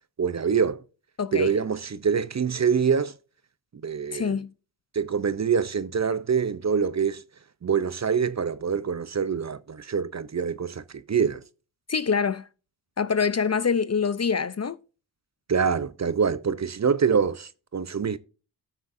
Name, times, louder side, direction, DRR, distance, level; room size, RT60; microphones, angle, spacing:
voice 1, 0.2-0.8 1.3-3.1 3.8-4.4 4.9-7.2 7.6-11.4 15.5-18.2, right 6 dB, 35° right, 0.7 m, -25 dB
voice 2, 1.2-1.5 4.1-4.5 11.9-12.5 13.0-14.8, left 6 dB, 35° left, 0.6 m, -25 dB
13.5 x 6.2 x 2.6 m
cardioid pair, 45°, 47 cm